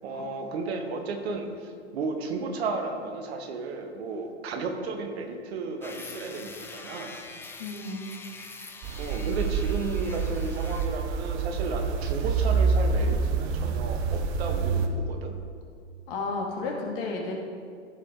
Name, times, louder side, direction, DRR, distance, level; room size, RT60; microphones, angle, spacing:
voice 1, 0.0-7.2 9.0-15.3, right 3 dB, 60° right, 5 dB, 1.3 m, -33 dB
sound 1, 5.8-10.9, left 3 dB, 5° left, 0.4 m, -44 dB
voice 2, 7.6-8.1 16.1-17.3, left 3 dB, 50° left, 0 dB, 2.1 m, -32 dB
sound 2, 8.8-14.9, right 5 dB, 35° right, 0.9 m, -27 dB
14.5 x 4.9 x 3.7 m, 2.2 s
hypercardioid pair, 110°, 35 cm